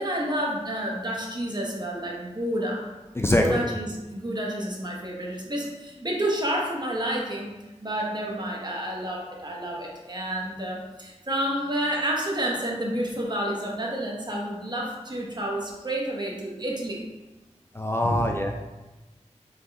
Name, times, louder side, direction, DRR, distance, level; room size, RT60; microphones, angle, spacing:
voice 1, 0.0-2.8 3.2-7.5 7.8-17.0 18.0-18.2, right 1 dB, 35° right, -2 dB, 1.1 m, -29 dB
voice 2, 3.2-3.7 17.7-18.5, left 1 dB, 20° left, 1 dB, 0.4 m, -24 dB
4.1 x 3.8 x 3.4 m, 1.1 s
wide cardioid pair, 50°, 12 cm